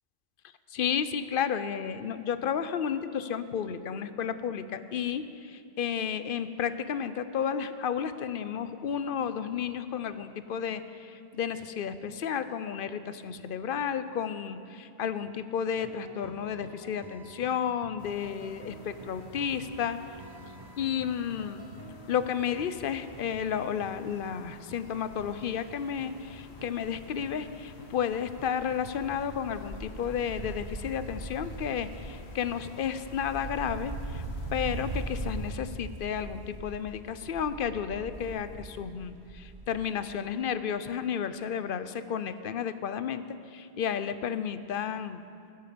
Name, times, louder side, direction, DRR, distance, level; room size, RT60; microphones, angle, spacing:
voice 1, 0.7-20.0 20.5-21.7 22.1-34.2 34.5-45.2, left 8 dB, 60° left, 13 dB, 0.7 m, -32 dB
sound 1, 15.7-28.8 29.1-29.3 29.6-29.7 30.1-30.2 30.6-30.7 31.1-31.2 31.6-31.7 32.1-32.2 32.6-32.7, right 3 dB, 30° right, 0.6 m, -50 dB
sound 2, 18.0-35.5, left 5 dB, 80° left, 1.0 m, -50 dB
Wind, 22.9-23.2 23.6-23.7 24.0-27.5 27.8-40.0 40.2-40.3, right 2 dB, 50° right, 1.1 m, -41 dB
15.5 x 12.0 x 5.1 m, 2.5 s
omnidirectional pair, 1.1 m